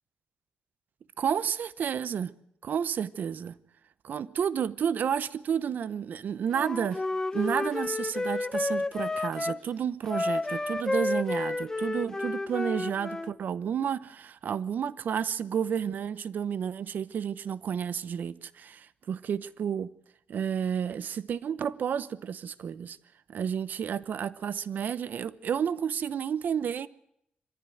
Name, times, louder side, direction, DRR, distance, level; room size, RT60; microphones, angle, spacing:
voice 1, 1.2-2.3 2.6-3.6 4.0-7.0 7.3-19.9 20.3-23.0 23.3-26.9, right 8 dB, 70° right, 0.9 m, -31 dB
Wind instrument woodwind instrument, 6.5-9.6 10.1-13.3, left 2 dB, 15° left, 0.8 m, -31 dB
23.5 x 15.5 x 9.3 m
wide cardioid pair, 115°, 3 cm